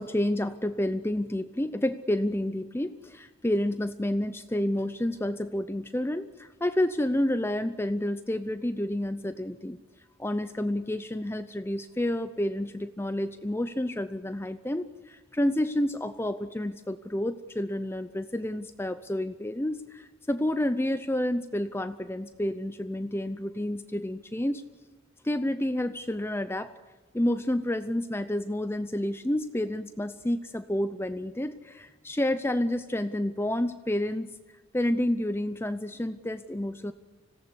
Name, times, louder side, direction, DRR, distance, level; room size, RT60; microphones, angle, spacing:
voice 1, 0.0-9.8 10.2-24.6 25.2-26.7 27.1-34.3 34.7-36.9, left 1 dB, 10° left, 11 dB, 0.6 m, -29 dB
26.0 x 17.5 x 8.1 m, 1.4 s
head